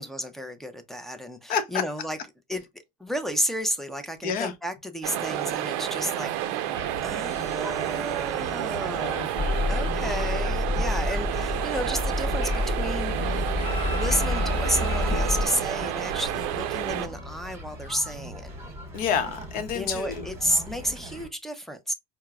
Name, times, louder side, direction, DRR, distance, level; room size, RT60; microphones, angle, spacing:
voice 1, 0.0-2.2 2.5-2.6 3.0-9.4 9.7-13.3 13.9-18.5 19.7-21.9, equal, ahead, 0.4 m, -32 dB
voice 2, 4.2-4.5 9.0-10.2 18.9-20.3, left 7 dB, 60° left, 0.7 m, -30 dB
sound 1, 5.0-17.1, right 12 dB, 80° right, 0.5 m, -30 dB
sound 2, 6.7-21.3, right 1 dB, 15° right, 1.1 m, -41 dB
sound 3, 9.4-15.5, left 3 dB, 40° left, 1.0 m, -28 dB
4.4 x 2.0 x 2.3 m
supercardioid pair, 110°, 17 cm